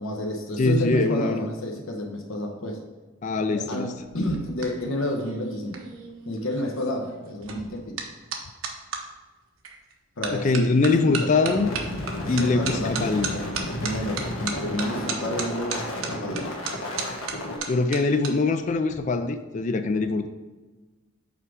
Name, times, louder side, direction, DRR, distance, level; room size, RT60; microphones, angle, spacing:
voice 1, 0.0-2.8 3.5-5.8 6.3-8.0 10.2-11.3 12.2-13.5 13.8-16.5, left 1 dB, 70° left, 1 dB, 0.9 m, -30 dB
voice 2, 0.6-1.5 3.2-4.0 10.3-11.7 12.3-13.4 17.7-20.3, left 3 dB, 35° left, 8 dB, 0.3 m, -23 dB
sound 1, 4.0-9.0 9.6-9.9 10.2-18.3 18.6-19.0, right 5 dB, 75° right, 1.0 m, -35 dB
sound 2, 11.4-17.6, left 1 dB, 90° left, 1.3 m, -32 dB
5.7 x 4.8 x 6.2 m, 1.3 s
head